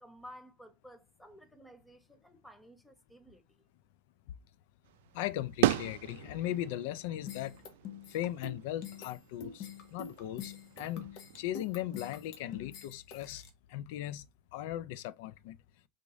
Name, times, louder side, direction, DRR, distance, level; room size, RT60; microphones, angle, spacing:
voice 1, 0.0-3.4, equal, 5° left, 0.6 m, -54 dB
sound 1, 4.8-12.8, right 14 dB, 85° right, 0.3 m, -38 dB
voice 2, 5.1-7.6 8.1-11.1 11.4-13.4 13.7-14.2 14.5-15.6, left 13 dB, 70° left, 0.3 m, -38 dB
sound 2, 7.3-13.5, left 7 dB, 50° left, 0.9 m, -45 dB
3.7 x 3.0 x 2.5 m
supercardioid pair, 150°, 0 cm